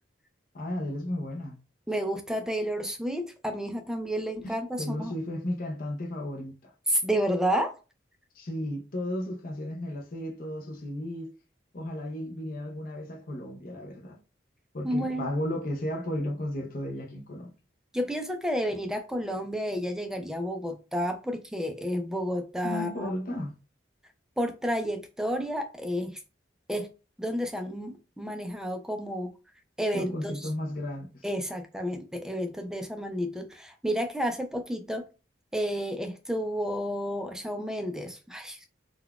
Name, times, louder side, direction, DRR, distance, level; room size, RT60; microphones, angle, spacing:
voice 1, 0.5-1.6 4.4-6.7 8.3-11.3 11.7-14.2 14.7-17.5 22.6-23.5 29.9-31.3, left 1 dB, 45° left, 0.6 m, -34 dB
voice 2, 1.9-5.1 6.9-7.8 14.8-15.3 17.9-23.1 24.4-26.2 26.7-26.9 27.2-29.3 29.8-30.5 31.2-35.0 35.5-38.7, equal, 5° right, 0.3 m, -31 dB
3.8 x 2.2 x 2.3 m
head